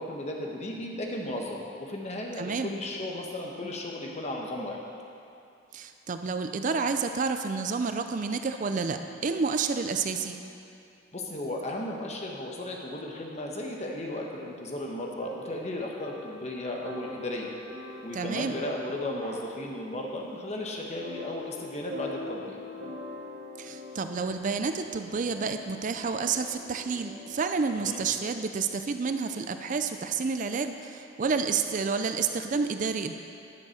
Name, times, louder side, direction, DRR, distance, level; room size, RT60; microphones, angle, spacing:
voice 1, 0.0-4.8 11.1-17.5 18.0-22.6 27.8-28.0, left 1 dB, 35° left, 0 dB, 1.2 m, -35 dB
voice 2, 2.4-2.7 5.7-10.4 18.1-18.5 23.6-33.1, right 5 dB, 40° right, 7 dB, 0.4 m, -29 dB
sound 1, 15.2-28.5, left 2 dB, 55° right, 1.5 m, -45 dB
10.5 x 7.2 x 6.5 m, 2.7 s
head